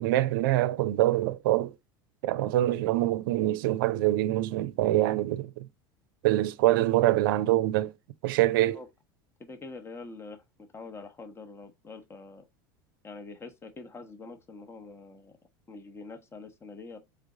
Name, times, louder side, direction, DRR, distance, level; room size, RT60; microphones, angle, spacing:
voice 1, 0.0-1.7 2.2-5.7 6.2-7.9 8.2-8.8, right 15 dB, 70° right, 0.4 m, -25 dB
voice 2, 9.5-10.4 10.7-12.5 13.0-15.3 15.7-17.0, left 3 dB, 20° left, 1.0 m, -45 dB
3.7 x 3.4 x 3.8 m
hypercardioid pair, 95°, 12 cm